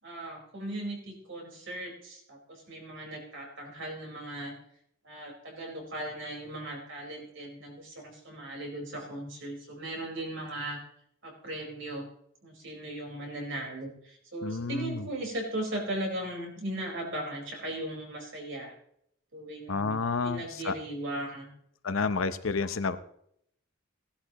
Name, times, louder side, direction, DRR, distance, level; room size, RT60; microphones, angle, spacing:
voice 1, 0.0-4.6 5.0-10.8 11.2-12.1 12.4-18.7 19.3-20.0 20.2-21.5, right 1 dB, 65° right, 0 dB, 4.6 m, -38 dB
voice 2, 14.4-15.0 19.7-20.7 21.8-23.0, left 4 dB, 75° left, 12 dB, 0.8 m, -30 dB
17.5 x 11.5 x 3.0 m, 0.71 s
head